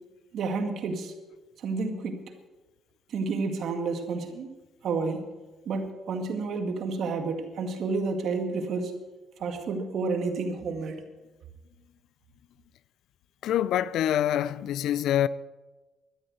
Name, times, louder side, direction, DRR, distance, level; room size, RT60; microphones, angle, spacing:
voice 1, 0.3-1.1 1.6-2.2 3.1-4.5 4.8-5.3 5.7-8.9 9.4-11.0, right 4 dB, 70° right, 2.0 m, -30 dB
voice 2, 13.4-15.3, left 11 dB, 80° left, 0.4 m, -25 dB
12.5 x 10.0 x 8.0 m
cardioid pair, 90°, 0 cm